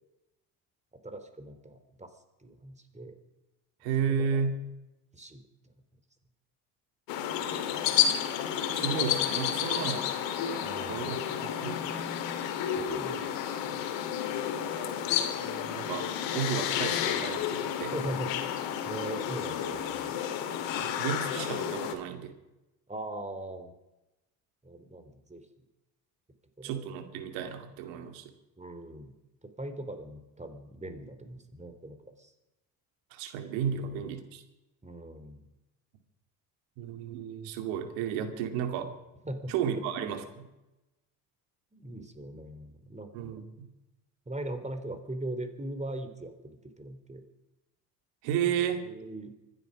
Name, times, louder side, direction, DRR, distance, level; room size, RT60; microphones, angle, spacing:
voice 1, 1.0-2.1 2.4-3.1 4.1-4.5 5.1-5.4 10.6-11.2 12.8-13.9 17.8-18.5 18.8-20.1 22.9-23.7 24.6-25.4 26.6-26.9 27.9-28.1 28.6-29.1 29.6-32.3 33.8-34.0 34.8-35.4 39.2-39.8 41.7-43.4 44.3-47.2 48.8-49.3, right 1 dB, 15° right, 8 dB, 3.3 m, -40 dB
voice 2, 3.8-4.7 8.7-10.1 10.9-11.9 15.4-16.1 16.3-17.9 20.8-22.3 26.6-28.3 33.1-34.4 36.8-38.9 39.5-40.5 43.1-43.7 48.2-48.9, right 8 dB, 75° right, 7 dB, 2.5 m, -33 dB
sound 1, 7.1-21.9, left 9 dB, 70° left, 2.2 m, -31 dB
25.0 x 11.0 x 5.2 m, 0.99 s
hypercardioid pair, 60°, 46 cm